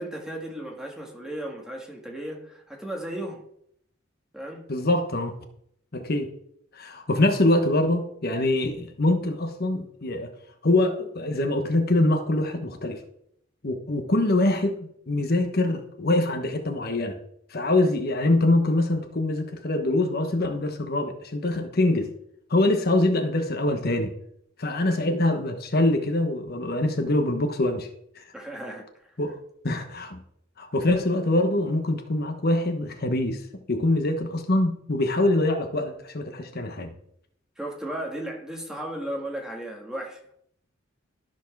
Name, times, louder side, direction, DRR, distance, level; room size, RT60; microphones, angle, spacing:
voice 1, 0.0-3.4 4.3-4.7 28.3-28.9 37.6-40.2, right 1 dB, 5° right, 1.7 m, -35 dB
voice 2, 4.7-5.3 5.9-6.3 6.7-10.3 10.6-13.0 13.6-14.8 15.1-17.2 17.5-22.1 22.5-24.1 24.6-27.9 28.2-28.3 29.2-29.4 29.6-30.2 30.6-33.4 33.7-36.9, left 2 dB, 50° left, 1.2 m, -24 dB
13.0 x 4.6 x 6.1 m
head